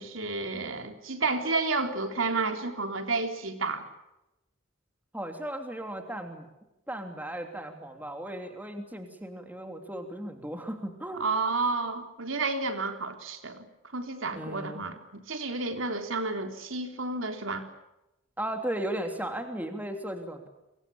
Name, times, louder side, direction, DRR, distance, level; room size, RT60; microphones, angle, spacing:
voice 1, 0.0-3.8 11.2-13.6 13.9-17.7, right 3 dB, 75° right, 6 dB, 3.6 m, -31 dB
voice 2, 5.1-6.5 6.9-11.2 14.3-14.8 18.4-20.5, right 1 dB, 10° right, 5 dB, 3.1 m, -36 dB
29.0 x 24.0 x 7.0 m, 0.95 s
head